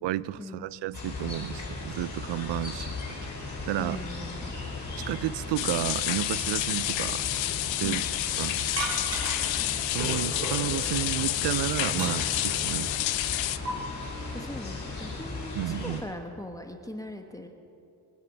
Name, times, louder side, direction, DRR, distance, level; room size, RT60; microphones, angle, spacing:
voice 1, 0.0-3.2 3.7-4.0 5.1-7.2 7.7-8.6 9.9-12.9 15.5-16.0, right 14 dB, 70° right, 19 dB, 0.6 m, -32 dB
sound 1, 0.9-16.0, left 3 dB, 40° left, 4.6 m, -37 dB
voice 2, 3.8-4.5 7.8-8.1 14.3-17.5, left 1 dB, 10° left, 4 dB, 1.1 m, -40 dB
sound 2, 5.6-13.6, left 15 dB, 85° left, 0.7 m, -29 dB
sound 3, 8.8-9.6 10.0-11.0 11.4-12.5 13.6-13.7, right 1 dB, 35° right, 3.8 m, -34 dB
22.5 x 9.0 x 7.0 m, 2.8 s
cardioid pair, 90°, 45 cm